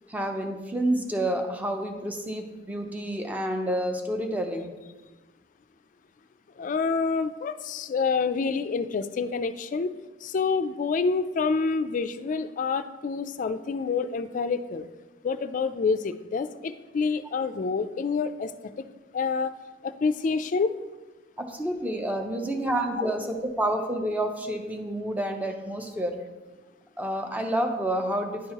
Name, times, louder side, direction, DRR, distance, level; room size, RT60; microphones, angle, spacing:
voice 1, 0.1-4.7 21.4-26.2 27.0-28.5, right 1 dB, 10° right, 4 dB, 0.6 m, -29 dB
voice 2, 6.6-9.9 10.2-14.9 15.2-18.5 18.8-18.9 19.1-19.5 19.8-20.7, left 4 dB, 45° left, 11 dB, 0.3 m, -27 dB
10.0 x 4.5 x 2.9 m, 1.2 s
head